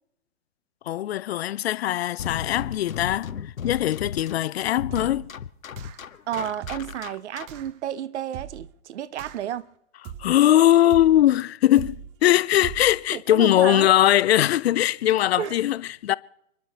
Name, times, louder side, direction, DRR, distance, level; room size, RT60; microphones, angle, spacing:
voice 1, 0.9-5.3 10.2-16.1, left 13 dB, 50° left, 0.6 m, -21 dB
sound 1, 2.2-7.7, left 7 dB, 90° left, 0.9 m, -36 dB
sound 2, 4.9-5.3 5.8-6.2 6.6-7.0 7.5-7.8 8.3-8.8 9.2-9.6 10.0-10.5 10.9-11.3 11.8-12.2 12.6-13.0, right 9 dB, 25° right, 0.7 m, -39 dB
voice 2, 6.3-9.7 13.1-13.9 15.4-15.6, right 10 dB, 60° right, 0.9 m, -31 dB
29.0 x 11.0 x 4.1 m
hypercardioid pair, 135°, 39 cm